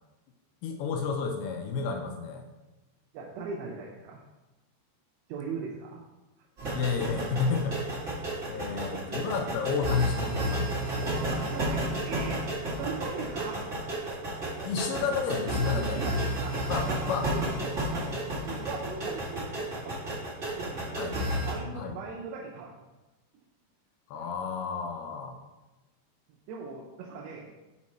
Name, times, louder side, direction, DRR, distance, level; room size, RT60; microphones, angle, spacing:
voice 1, 0.6-2.4 6.8-7.8 8.5-10.7 14.6-16.0 16.7-17.3 21.0-21.2 21.7-21.9 24.1-25.4, left 5 dB, 80° left, 4 dB, 2.4 m, -31 dB
voice 2, 3.1-4.2 5.3-6.0 6.9-7.5 11.0-12.4 12.7-13.7 15.8-18.2 18.5-20.0 20.5-21.0 21.4-22.7 26.5-27.5, right 5 dB, 80° right, -2 dB, 2.8 m, -39 dB
sound 1, 6.6-21.5, right 1 dB, 60° right, 0.8 m, -32 dB
6.1 x 5.1 x 4.2 m, 1.1 s
omnidirectional pair, 4.9 m